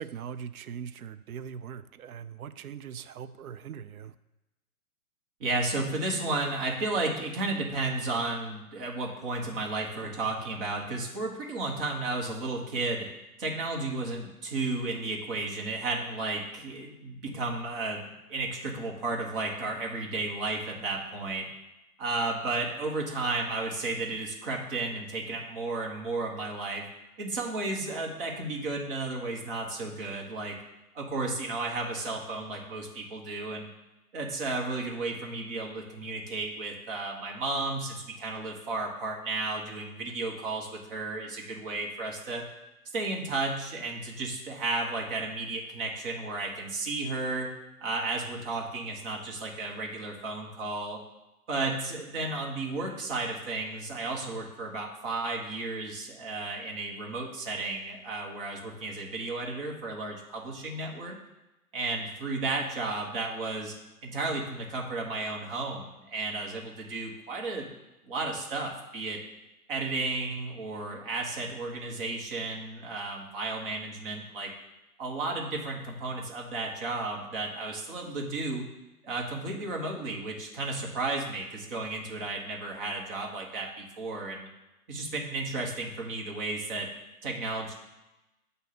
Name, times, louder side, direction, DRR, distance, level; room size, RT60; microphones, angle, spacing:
voice 1, 0.0-4.1, right 8 dB, 70° right, 0.5 m, -41 dB
voice 2, 5.4-13.1 13.4-21.5 22.0-26.8 27.2-30.5 30.9-33.7 34.1-42.4 42.9-47.5 47.8-51.0 51.5-61.1 61.7-63.7 64.0-67.7 68.0-69.2 69.7-74.5 75.0-78.6 79.0-84.5 84.9-86.9 87.2-87.7, right 3 dB, 35° right, 1.4 m, -33 dB
7.8 x 2.7 x 5.9 m
figure-of-eight pair, 130°, 45 cm